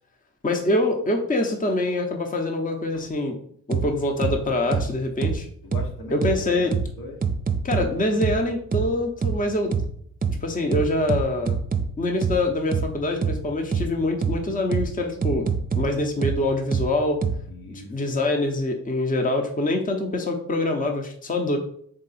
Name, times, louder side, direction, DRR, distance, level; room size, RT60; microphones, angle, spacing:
voice 1, 0.4-3.4 3.7-5.5 6.1-6.7 7.6-9.7 10.4-11.6 12.0-15.5 15.8-17.2 17.9-21.6, left 2 dB, 25° left, 3 dB, 0.8 m, -25 dB
sound 1, 3.7-3.8 4.2-4.3 4.7-4.8 5.2-5.3 5.7-5.8 6.2-6.3 6.7-6.8 7.2-7.8 8.2-8.3 8.7-8.8 9.2-9.3 9.7-9.8 10.2-10.3 10.7-11.8 12.2-12.3 12.7-12.8 13.2-13.3 13.7-13.8 14.2-14.3 14.7-14.8 15.2-15.8 16.2-16.3 16.7-16.8 17.2-17.3, right 6 dB, 25° right, 0.5 m, -23 dB
voice 2, 5.6-7.2 17.4-18.3, left 2 dB, 75° left, 0 dB, 1.2 m, -40 dB
3.8 x 3.2 x 4.1 m, 0.64 s
cardioid pair, 55°, 34 cm